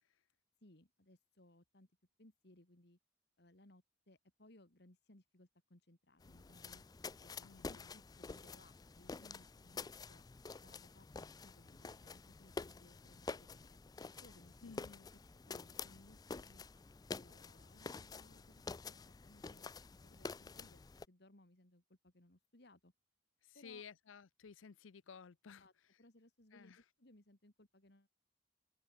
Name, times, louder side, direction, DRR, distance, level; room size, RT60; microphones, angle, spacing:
voice 1, 0.6-1.9 2.2-3.0 3.4-6.8 7.2-10.2 10.6-13.8 14.2-14.8 15.5-16.7 17.1-19.7 20.0-22.9 23.5-23.8 25.6-25.7 26.0-28.1, left 1 dB, 55° left, 2.6 m, -65 dB
sound 1, 6.2-21.1, left 4 dB, 20° left, 0.3 m, -49 dB
voice 2, 7.4-7.9 14.6-15.1 23.4-25.7 26.5-26.8, left 6 dB, 90° left, 0.6 m, -55 dB
sound 2, 14.5-18.2, right 1 dB, 10° right, 3.9 m, -77 dB
open air
head